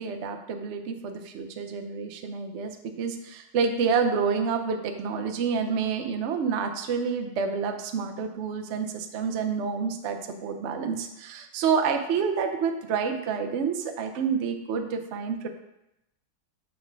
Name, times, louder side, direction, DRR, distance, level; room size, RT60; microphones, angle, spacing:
voice 1, 0.0-15.5, right 6 dB, 75° right, 5 dB, 0.6 m, -28 dB
6.5 x 4.0 x 4.6 m, 0.88 s
omnidirectional pair, 2.0 m